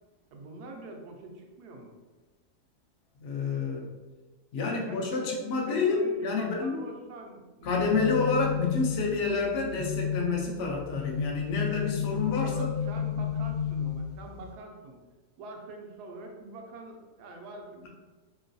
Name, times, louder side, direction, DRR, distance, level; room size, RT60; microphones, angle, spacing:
voice 1, 0.3-1.9 4.6-5.3 5.7-8.0 12.4-15.0 15.4-17.9, right 2 dB, 80° right, 2 dB, 1.1 m, -45 dB
voice 2, 3.2-3.9 4.5-6.8 7.6-12.7, left 4 dB, 75° left, -1 dB, 0.5 m, -29 dB
sound 1, 7.6-14.5, left 8 dB, 50° left, 0.9 m, -32 dB
3.0 x 2.9 x 2.6 m, 1.3 s
omnidirectional pair, 1.7 m